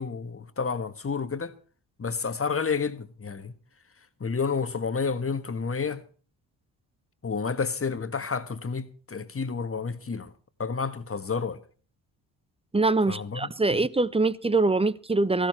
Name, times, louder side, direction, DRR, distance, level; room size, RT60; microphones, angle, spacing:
voice 1, 0.0-1.5 2.0-3.5 4.2-6.0 7.2-10.3 10.6-11.6 13.1-13.5, left 5 dB, 30° left, 1.5 m, -30 dB
voice 2, 12.7-15.5, right 3 dB, 15° right, 0.7 m, -24 dB
16.0 x 13.5 x 4.4 m
supercardioid pair, 50°, 46 cm